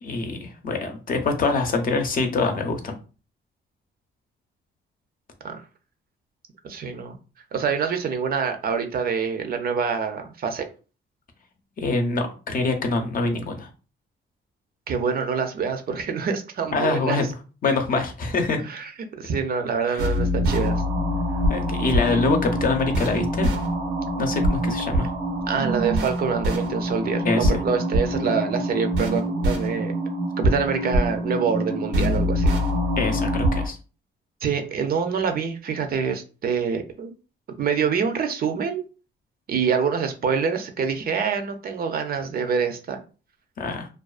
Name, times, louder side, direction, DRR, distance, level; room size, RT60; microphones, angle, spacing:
voice 1, 0.0-2.9 11.8-13.7 16.7-17.3 17.6-18.6 19.8-20.0 21.5-23.5 24.2-25.1 27.2-27.6 33.0-33.8 43.6-43.9, left 3 dB, 45° left, 4 dB, 0.6 m, -25 dB
voice 2, 6.6-7.2 7.5-10.7 14.9-17.3 18.6-20.8 25.5-29.9 30.4-32.5 34.4-37.1 37.6-38.8 39.5-43.0, right 6 dB, 50° right, 6 dB, 0.5 m, -26 dB
Decaying Planet, 20.0-33.7, equal, 90° right, 0.7 m, -24 dB
2.3 x 2.2 x 2.4 m, 0.34 s
cardioid pair, 90°, 20 cm